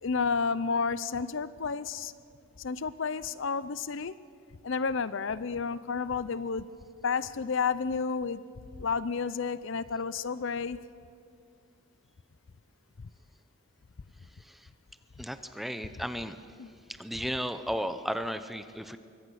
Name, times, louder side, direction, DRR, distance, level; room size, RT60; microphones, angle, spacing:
voice 1, 0.0-2.1 2.6-4.2 4.6-6.7 7.0-8.4 8.8-10.8 16.6-16.7, left 5 dB, 60° left, 16 dB, 0.6 m, -31 dB
voice 2, 15.2-16.4 17.0-19.0, equal, ahead, 10 dB, 0.8 m, -34 dB
25.5 x 23.5 x 6.4 m, 2.4 s
head